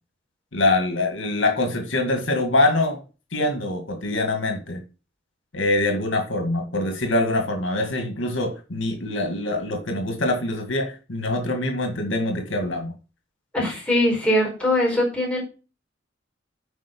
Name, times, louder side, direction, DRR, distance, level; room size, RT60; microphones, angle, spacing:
voice 1, 0.5-3.0 3.3-4.8 5.5-12.9, left 2 dB, 80° left, 5 dB, 2.0 m, -24 dB
voice 2, 13.5-15.4, left 1 dB, 5° left, -3 dB, 4.5 m, -21 dB
9.2 x 5.4 x 5.4 m, 0.34 s
head